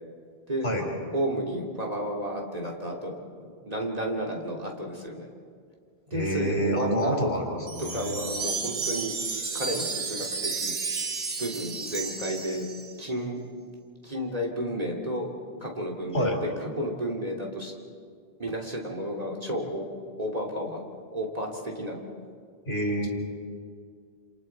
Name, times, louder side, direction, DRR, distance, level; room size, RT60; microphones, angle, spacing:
voice 1, 1.1-5.3 6.1-7.2 7.8-9.1 9.5-10.7 11.4-12.7 13.0-13.4 14.0-15.3 15.6-16.3 16.6-17.7 18.4-19.8 20.2-20.8 21.1-22.0, equal, 40° right, -1 dB, 2.9 m, -32 dB
voice 2, 6.1-8.2 16.1-16.4 22.7-23.1, equal, 85° left, 0 dB, 4.6 m, -27 dB
Wind chime, 7.7-13.0, right 4 dB, 85° right, 1.7 m, -32 dB
28.0 x 28.0 x 4.6 m, 2.2 s
omnidirectional pair, 1.0 m